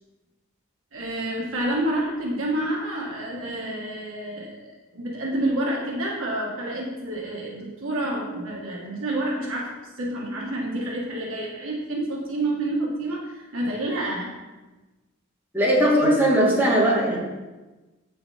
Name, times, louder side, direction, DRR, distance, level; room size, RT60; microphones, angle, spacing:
voice 1, 0.9-14.3, right 1 dB, 70° right, -3 dB, 1.4 m, -29 dB
voice 2, 15.5-17.2, equal, 10° right, -10 dB, 2.8 m, -19 dB
8.3 x 5.6 x 4.2 m, 1.2 s
head